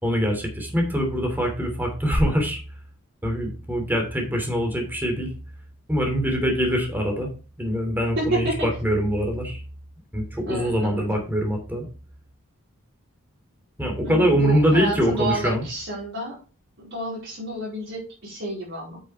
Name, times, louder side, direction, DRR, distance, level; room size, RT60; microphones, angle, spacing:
voice 1, 0.0-2.6 3.2-5.3 5.9-7.3 7.6-9.6 10.1-11.8 13.8-15.6, equal, 10° right, 2 dB, 3.0 m, -23 dB
voice 2, 8.2-8.7 10.5-11.2 14.0-16.4 16.8-19.0, right 1 dB, 55° right, -5 dB, 4.4 m, -30 dB
8.7 x 7.3 x 3.7 m, 0.36 s
head